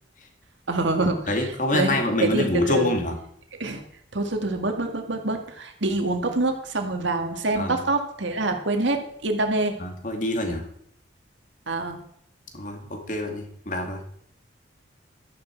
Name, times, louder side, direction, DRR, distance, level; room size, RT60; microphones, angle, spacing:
voice 1, 0.7-2.9 3.5-3.8 4.1-9.8 11.7-12.0, right 2 dB, 70° right, 5 dB, 2.0 m, -26 dB
voice 2, 1.3-3.1 7.6-7.8 9.8-10.7 12.5-14.0, left 1 dB, 40° left, 4 dB, 2.1 m, -26 dB
13.5 x 10.0 x 4.6 m, 0.69 s
head